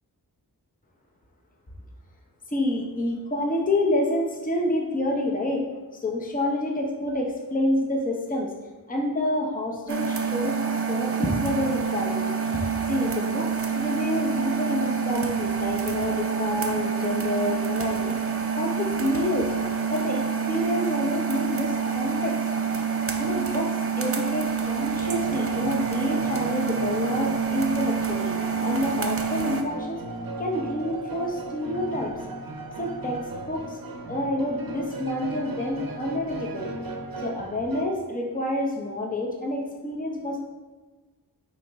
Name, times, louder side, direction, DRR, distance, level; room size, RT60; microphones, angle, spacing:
voice 1, 2.5-5.7 5.9-8.5 8.9-13.5 13.8-19.5 19.9-22.4 23.2-23.7 24.0-28.3 28.6-30.0 30.4-32.1 32.8-33.2 33.5-33.8 34.1-36.7 37.2-40.4, left 1 dB, 20° left, 0 dB, 0.8 m, -28 dB
sound 1, 9.9-29.6, right 6 dB, 35° right, 0.6 m, -27 dB
sound 2, 25.0-37.8, right 2 dB, 60° right, 0.8 m, -37 dB
8.8 x 3.1 x 3.5 m, 1.3 s
wide cardioid pair, 75°, 39 cm